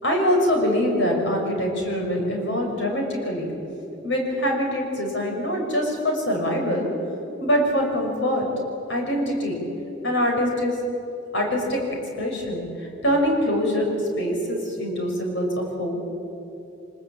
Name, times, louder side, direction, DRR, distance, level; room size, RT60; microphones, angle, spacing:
voice 1, 0.0-3.5 4.0-6.9 7.4-8.4 8.9-9.6 10.0-10.8 11.3-11.8 12.2-13.9 14.2-16.0, equal, 70° left, 1 dB, 6.1 m, -24 dB
25.0 x 20.0 x 8.8 m, 2.9 s
head